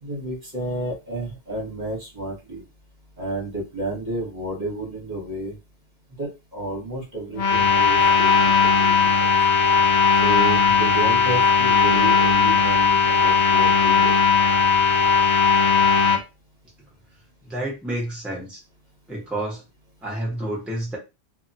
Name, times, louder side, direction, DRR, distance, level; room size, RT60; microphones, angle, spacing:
voice 1, 0.0-2.6 3.2-5.5 6.2-9.3 10.2-14.3, right 1 dB, 45° right, -3 dB, 1.1 m, -31 dB
sound 1, 7.3-16.2, left 5 dB, 90° left, 0.9 m, -18 dB
voice 2, 17.4-18.6 19.1-19.6 20.0-21.0, right 1 dB, ahead, -3 dB, 0.9 m, -29 dB
2.8 x 2.3 x 2.6 m, 0.26 s
omnidirectional pair, 1.1 m